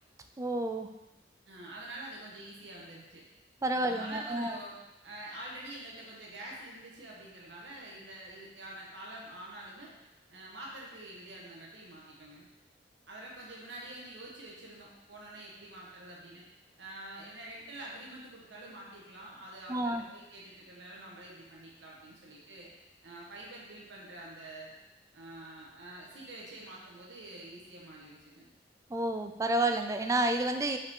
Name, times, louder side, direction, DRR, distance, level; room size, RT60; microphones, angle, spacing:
voice 1, 0.4-0.9 3.6-4.6 19.7-20.0 28.9-30.8, right 1 dB, 20° right, 6 dB, 0.3 m, -30 dB
voice 2, 1.5-3.2 3.7-4.8 5.0-9.9 10.3-12.5 13.1-16.4 16.8-22.7 23.0-24.7 25.1-28.5, right 1 dB, 75° right, -4 dB, 1.3 m, -46 dB
5.4 x 4.8 x 3.7 m, 0.97 s
head